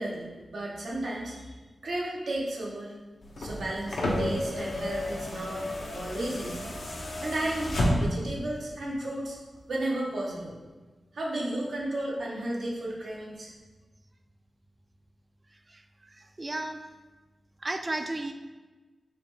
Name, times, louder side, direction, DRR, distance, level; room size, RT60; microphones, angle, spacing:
voice 1, 0.0-1.6 1.8-2.9 3.4-6.7 7.2-9.4 9.7-10.5 11.1-13.5, right 1 dB, 80° right, -4 dB, 0.8 m, -33 dB
sound 1, 3.2-8.3 9.6-9.7, left 1 dB, 80° left, 0.6 m, -31 dB
voice 2, 15.7-16.8 17.6-18.3, right 2 dB, 35° right, 7 dB, 0.3 m, -34 dB
3.9 x 2.9 x 3.2 m, 1.3 s
cardioid pair, 40°, 0 cm